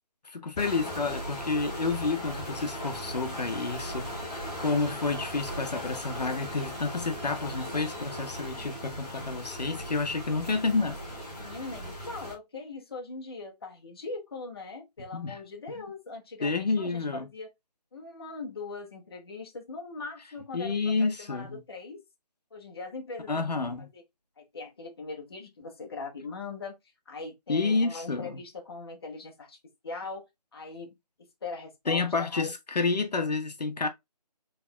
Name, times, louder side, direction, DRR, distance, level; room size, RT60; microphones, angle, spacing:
voice 1, 0.2-11.0 15.1-15.4 15.7-15.8 16.4-17.3 20.5-21.6 23.3-23.9 27.5-28.4 31.9-33.9, left 4 dB, 75° left, 1.0 m, -29 dB
sound 1, 0.6-12.3, equal, 10° left, 0.6 m, -38 dB
voice 2, 11.4-17.5 17.9-22.0 22.5-23.4 23.8-24.0 24.4-26.8 27.1-29.6 29.8-30.3 30.5-31.0 31.4-32.5, left 3 dB, 35° left, 1.0 m, -41 dB
4.6 x 3.4 x 2.2 m
hypercardioid pair, 175°, 21 cm